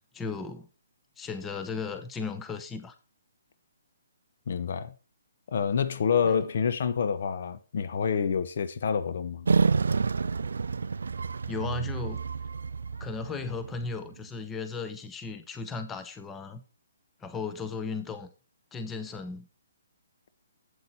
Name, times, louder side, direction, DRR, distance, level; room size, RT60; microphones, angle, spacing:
voice 1, 0.1-0.7 1.2-3.0 6.2-6.3 11.5-12.2 13.0-16.6 17.2-18.3 18.7-19.5, left 4 dB, 10° left, 0.9 m, -36 dB
voice 2, 4.5-4.9 5.5-9.5, left 6 dB, 55° left, 0.8 m, -27 dB
sound 1, 9.5-14.0, right 4 dB, 75° right, 0.3 m, -29 dB
8.1 x 7.9 x 4.2 m
figure-of-eight pair, 135°, 0 cm